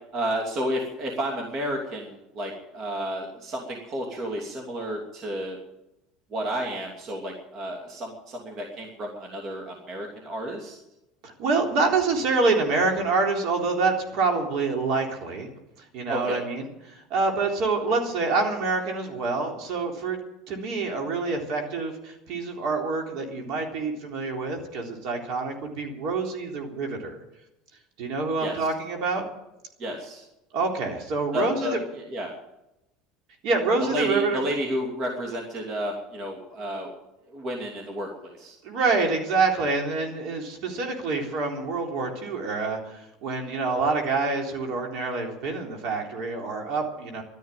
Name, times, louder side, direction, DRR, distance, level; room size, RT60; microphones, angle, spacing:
voice 1, 0.1-5.6 6.3-10.8 16.1-16.4 28.4-28.7 29.8-30.3 31.3-31.8 32.1-32.3 33.8-36.9 37.3-38.6, equal, 40° right, 1 dB, 2.8 m, -31 dB
voice 2, 11.2-15.5 15.9-20.2 20.5-27.2 28.0-29.2 30.5-31.8 33.4-34.4 38.6-47.2, right 3 dB, 60° right, 1 dB, 3.8 m, -26 dB
13.0 x 11.0 x 9.3 m, 0.89 s
supercardioid pair, 130°, 0 cm